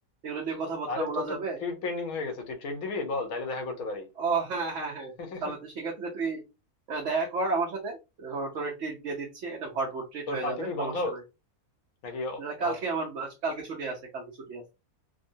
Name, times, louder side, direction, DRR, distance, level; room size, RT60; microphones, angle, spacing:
voice 1, 0.2-1.6 4.2-5.1 5.4-6.4 6.9-11.2 12.4-14.6, right 4 dB, 60° right, 0.9 m, -32 dB
voice 2, 0.9-4.1 5.2-5.4 10.3-11.1 12.0-12.7, left 3 dB, 70° left, 1.2 m, -33 dB
3.6 x 2.0 x 2.6 m
omnidirectional pair, 1.6 m